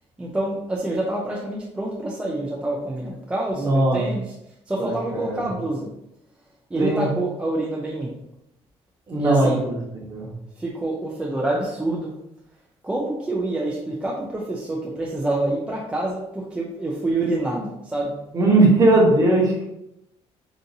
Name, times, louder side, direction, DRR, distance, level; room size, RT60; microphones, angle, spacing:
voice 1, 0.2-4.2 4.7-5.9 6.7-8.1 9.2-9.6 10.6-12.1 12.8-18.1, right 2 dB, 10° right, -4 dB, 0.4 m, -27 dB
voice 2, 3.6-4.1 4.8-5.5 6.8-7.1 9.1-10.3 18.3-19.6, right 2 dB, 30° right, -3 dB, 0.9 m, -19 dB
3.9 x 2.5 x 2.6 m, 0.84 s
cardioid pair, 160°, 12 cm